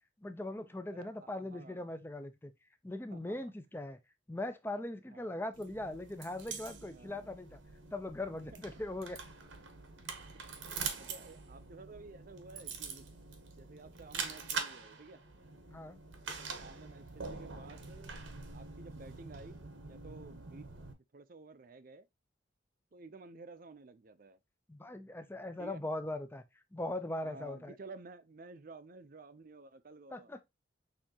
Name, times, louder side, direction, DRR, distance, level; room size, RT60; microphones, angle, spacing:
voice 1, 0.2-2.5 2.8-4.0 4.3-7.6 7.9-9.2 15.7-16.0 24.7-26.4 26.7-27.7 30.1-30.4, left 1 dB, 10° left, 0.5 m, -40 dB
voice 2, 0.9-1.9 3.1-3.4 5.1-5.3 6.9-7.3 8.5-8.8 11.0-13.1 13.5-15.2 16.4-18.2 18.5-20.7 21.1-22.1 22.9-24.4 25.6-25.8 27.2-30.3, right 3 dB, 45° right, 0.5 m, -53 dB
sound 1, 5.5-20.9, right 5 dB, 80° right, 1.0 m, -44 dB
6.5 x 2.9 x 2.8 m
head